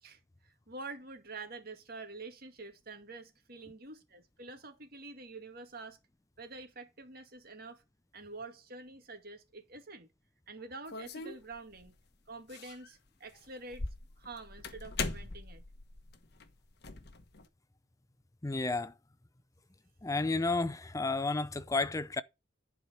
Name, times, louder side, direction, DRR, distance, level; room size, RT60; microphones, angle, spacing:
voice 1, 0.0-6.0 6.4-7.8 8.1-10.1 10.5-12.0 12.3-13.8 14.2-15.6, right 3 dB, 45° right, 2.2 m, -47 dB
sound 1, 10.9-11.9 12.5-12.9 13.3-17.5, left 4 dB, 50° left, 1.2 m, -41 dB
voice 2, 18.4-18.9 20.0-22.2, left 3 dB, 15° left, 0.5 m, -31 dB
11.0 x 4.8 x 6.2 m
head